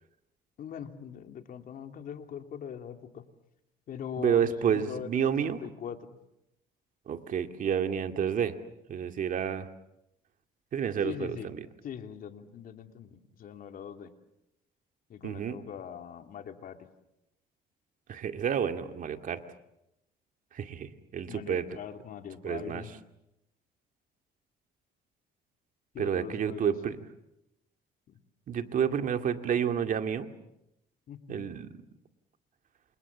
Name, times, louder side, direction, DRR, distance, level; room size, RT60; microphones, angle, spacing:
voice 1, 0.6-3.2 3.9-6.2 11.0-11.5 11.8-14.1 15.1-16.8 21.3-22.9 25.9-26.7 28.1-28.2 31.1-31.5, left 8 dB, 55° left, 6 dB, 2.8 m, -41 dB
voice 2, 4.2-5.6 7.1-8.6 8.9-9.7 10.7-11.7 15.2-15.6 18.1-19.4 20.5-21.7 22.4-22.8 26.0-27.0 28.5-30.3 31.3-31.7, right 8 dB, 50° right, 7 dB, 2.2 m, -30 dB
28.5 x 28.5 x 7.3 m, 0.87 s
cardioid pair, 110°, 17 cm